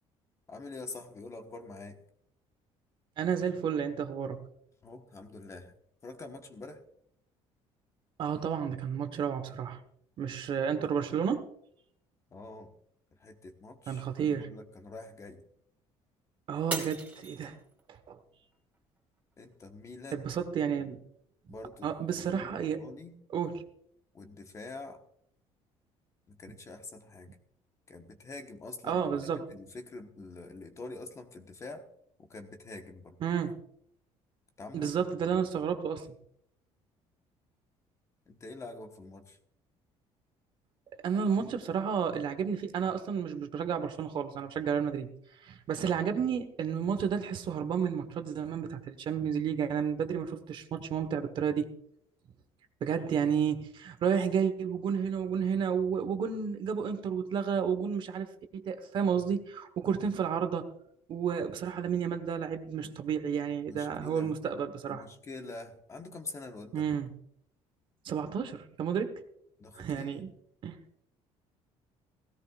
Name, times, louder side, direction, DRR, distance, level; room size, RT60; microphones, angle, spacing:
voice 1, 0.5-2.0 4.8-5.7 6.0-6.8 12.3-12.7 13.2-15.4 19.4-20.3 21.5-21.9 22.3-23.1 24.1-25.0 26.3-27.3 27.9-29.1 29.3-31.9 32.2-33.2 34.6-35.4 38.3-39.4 63.6-64.3 64.9-66.9 69.6-70.3, left 3 dB, 25° left, 5 dB, 1.3 m, -45 dB
voice 2, 3.2-4.5 8.2-9.8 10.2-11.5 13.9-14.5 16.5-17.6 17.9-18.2 20.1-21.0 21.8-22.8 23.3-23.6 28.8-29.4 33.2-33.5 34.7-36.1 41.0-45.1 45.4-51.7 52.8-58.3 58.5-60.7 61.1-65.1 66.7-67.1 68.0-69.2 69.7-70.3 70.6-70.8, right 7 dB, 45° right, 8 dB, 1.2 m, -31 dB
Shatter, 16.7-18.0 18.5-19.0 19.5-19.6, right 3 dB, 15° right, 3.3 m, -38 dB
17.0 x 16.5 x 2.5 m, 0.70 s
cardioid pair, 150°, 12 cm